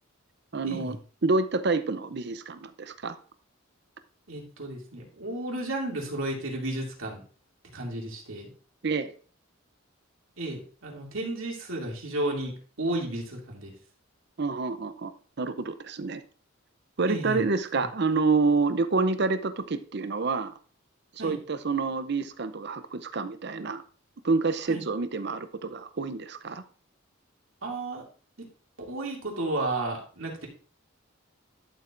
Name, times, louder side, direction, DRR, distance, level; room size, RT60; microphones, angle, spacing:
voice 1, 0.5-1.0 1.2-3.2 8.8-9.1 14.4-15.1 15.4-16.2 17.0-20.5 21.2-23.8 24.2-26.6, right 4 dB, 55° right, 11 dB, 0.6 m, -28 dB
voice 2, 4.3-7.2 7.7-8.5 10.4-13.7 17.1-17.4 17.7-17.9 21.2-21.4 24.7-24.8 27.6-28.0 28.9-30.5, right 1 dB, 75° right, -1 dB, 2.6 m, -33 dB
12.0 x 7.4 x 2.6 m, 0.41 s
head